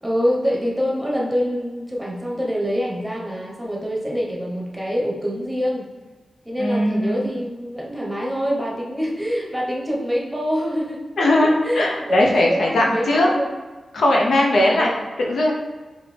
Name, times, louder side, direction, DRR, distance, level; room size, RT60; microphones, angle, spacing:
voice 1, 0.0-5.9 6.4-13.6 14.5-15.0, equal, 5° right, -3 dB, 1.0 m, -25 dB
voice 2, 6.6-7.3 11.2-13.3 13.9-14.9 15.2-15.5, left 1 dB, 85° left, -1 dB, 0.6 m, -19 dB
4.7 x 2.7 x 3.3 m, 1.2 s
wide cardioid pair, 75°, 0 cm